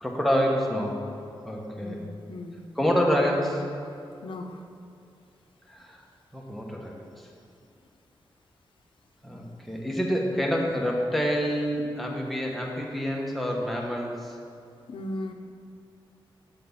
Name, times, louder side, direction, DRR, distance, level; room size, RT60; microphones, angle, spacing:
voice 1, 0.0-1.0 1.4-2.0 2.7-3.6 5.7-6.0 6.3-7.3 9.2-14.3, equal, ahead, -1 dB, 1.1 m, -27 dB
voice 2, 1.8-2.6 4.2-4.6 9.7-9.8 14.9-15.3, left 1 dB, 70° left, 5 dB, 0.7 m, -37 dB
7.1 x 5.8 x 5.7 m, 2.5 s
wide cardioid pair, 135°, 9 cm